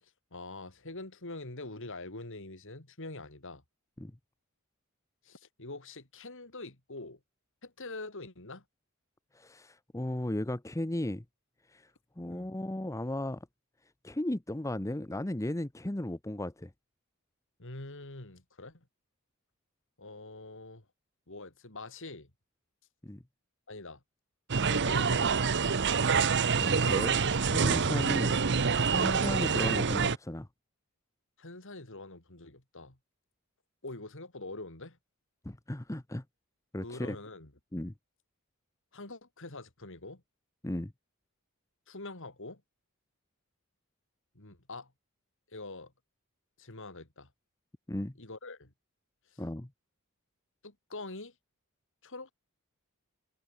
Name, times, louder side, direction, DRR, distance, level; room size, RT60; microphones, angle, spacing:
voice 1, 0.0-3.6 5.2-7.2 7.6-8.6 12.3-12.5 17.6-18.8 20.0-20.8 21.3-22.3 23.7-24.0 24.6-25.5 31.4-33.0 33.8-35.0 36.8-37.5 38.9-40.2 41.9-42.6 44.3-44.9 45.5-45.9 46.6-47.3 48.2-48.7 49.3-49.4 50.6-51.3 52.0-52.3, left 2 dB, 60° left, 3.3 m, -44 dB
voice 2, 9.3-11.2 11.7-11.9 12.2-13.4 14.0-16.7 23.0-23.2 26.2-28.4 28.9-30.5 35.4-36.2 36.7-37.2 37.7-37.9 40.6-40.9 47.9-48.1 49.4-49.7, left 1 dB, 15° left, 0.8 m, -35 dB
sound 1, 24.5-30.2, right 5 dB, 55° right, 0.9 m, -26 dB
head